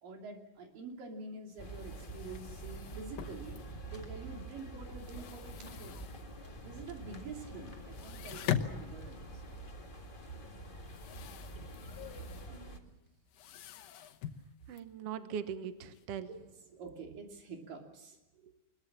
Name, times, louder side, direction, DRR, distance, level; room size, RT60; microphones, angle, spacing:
voice 1, 0.0-3.6 3.9-6.1 6.6-9.4 16.3-16.4 16.8-18.2, right 4 dB, 80° right, 2 dB, 4.6 m, -47 dB
sound 1, 0.8-0.9 1.2-1.3 1.5-4.1 4.5-6.6 6.9-7.0 7.3-7.5 7.8-16.0, left 10 dB, 85° left, 2.8 m, -43 dB
sound 2, 1.6-12.8, right 1 dB, 25° left, 1.1 m, -47 dB
voice 2, 12.5-12.8 14.7-16.3 18.4-18.5, right 8 dB, 60° right, 10 dB, 1.8 m, -41 dB
22.0 x 21.5 x 7.4 m, 1.1 s
omnidirectional pair, 3.9 m